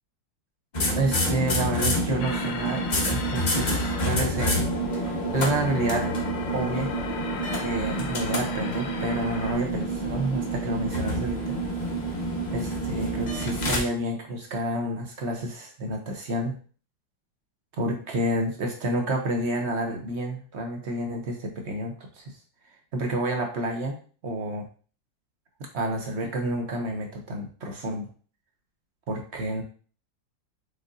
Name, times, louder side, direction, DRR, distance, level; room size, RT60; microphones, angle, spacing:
sound 1, 0.7-13.8, right 1 dB, 50° left, 0.5 m, -28 dB
voice 1, 1.0-6.1 6.5-6.9 7.6-11.5 12.5-16.5 17.8-22.2 22.9-23.9 24.2-24.6 25.6-28.0 29.1-29.6, right 1 dB, 55° right, 2 dB, 0.8 m, -29 dB
sound 2, 2.2-9.5, left 5 dB, 80° left, 1.5 m, -36 dB
5.3 x 3.8 x 2.6 m, 0.40 s
omnidirectional pair, 2.0 m